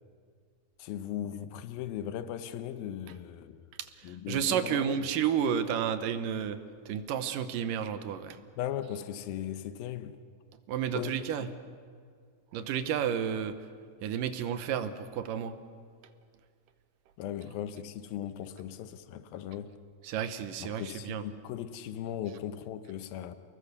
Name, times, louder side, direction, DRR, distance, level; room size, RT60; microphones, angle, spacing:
voice 1, 0.8-3.6 4.0-5.0 8.6-10.2 10.9-11.1 11.4-11.5 17.2-19.7 20.6-23.4, left 10 dB, 90° left, 2.7 m, -38 dB
voice 2, 3.8-6.6 6.9-8.4 10.7-11.5 12.5-13.6 14.0-15.5 20.0-21.2, right 8 dB, 75° right, 2.5 m, -31 dB
29.5 x 20.5 x 6.8 m
omnidirectional pair, 4.1 m